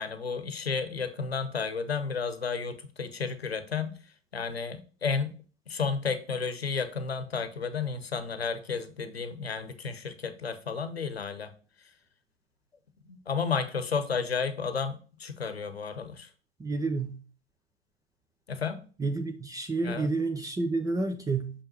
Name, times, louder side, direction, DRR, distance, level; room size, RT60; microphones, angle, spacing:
voice 1, 0.0-5.4 5.7-11.5 13.1-16.3 18.5-18.8 19.8-20.1, left 5 dB, 90° left, 11 dB, 0.9 m, -32 dB
voice 2, 16.6-17.1 19.0-21.5, right 3 dB, 10° right, 6 dB, 0.6 m, -29 dB
6.7 x 5.5 x 3.0 m, 0.38 s
figure-of-eight pair, 95°, 30 cm